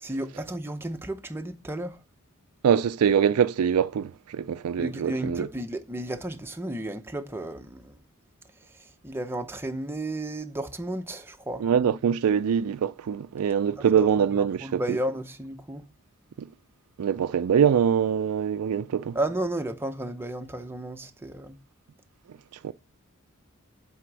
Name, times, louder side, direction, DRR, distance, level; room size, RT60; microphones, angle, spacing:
voice 1, 0.0-2.0 4.8-8.0 8.7-11.7 13.8-13.9 14.3-15.9 19.1-21.6, right 1 dB, 10° right, 0.6 m, -33 dB
voice 2, 2.6-5.5 11.6-14.8 16.4-16.5 17.0-19.2 22.6-22.7, right 8 dB, 75° right, 0.4 m, -23 dB
7.7 x 3.5 x 6.0 m
head